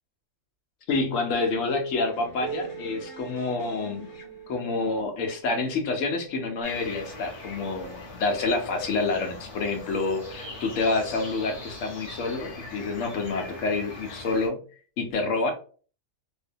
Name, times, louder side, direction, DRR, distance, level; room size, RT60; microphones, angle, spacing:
voice 1, 0.9-4.0 4.5-14.6 15.0-15.5, left 3 dB, 70° left, 4 dB, 1.0 m, -28 dB
sound 1, 2.0-4.9 7.0-7.7, left 4 dB, 55° left, 0.6 m, -47 dB
Piano, 2.4-7.7 8.6-8.7 9.2-9.3 10.1-10.2 11.2-11.3, right 10 dB, 75° right, 0.4 m, -43 dB
sound 2, 6.6-14.5, left 2 dB, 30° left, 1.1 m, -41 dB
2.7 x 2.1 x 2.6 m, 0.40 s
omnidirectional pair, 1.4 m